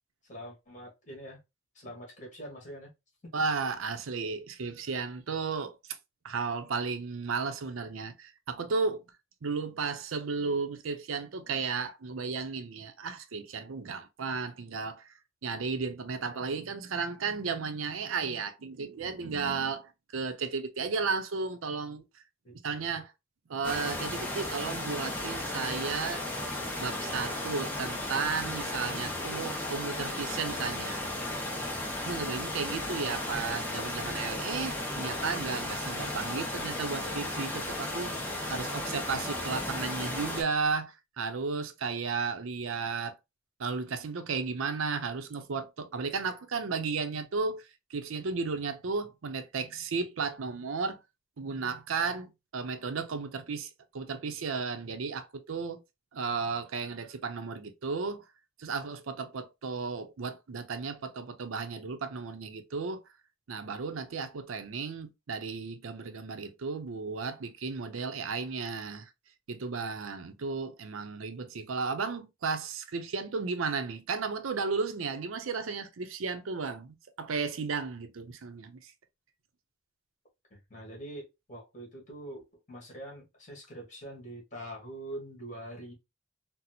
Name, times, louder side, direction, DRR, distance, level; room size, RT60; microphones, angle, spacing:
voice 1, 0.3-1.4 1.7-2.9 22.4-22.9 80.5-85.9, right 1 dB, 40° left, 1.5 m, -44 dB
voice 2, 3.3-5.8 6.2-9.0 9.4-15.1 15.4-22.0 22.6-23.1 23.5-26.2 26.8-31.0 32.1-43.2 43.6-51.0 51.4-53.7 53.9-55.8 56.1-58.2 58.6-63.0 63.5-69.1 69.5-78.9, right 4 dB, 85° right, 0.6 m, -34 dB
sound 1, 23.6-40.4, left 1 dB, 10° left, 0.6 m, -35 dB
4.1 x 2.0 x 2.7 m
head